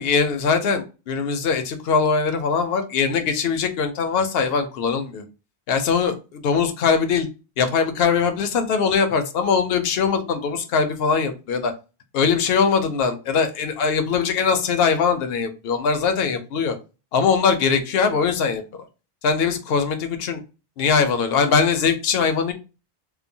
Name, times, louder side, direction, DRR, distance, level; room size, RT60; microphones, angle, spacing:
voice 1, 0.0-5.2 5.7-7.3 7.6-11.7 12.1-16.8 17.1-18.6 19.2-20.4 20.8-22.5, left 5 dB, 75° left, 7 dB, 0.8 m, -21 dB
2.8 x 2.1 x 2.6 m, 0.31 s
omnidirectional pair, 1.0 m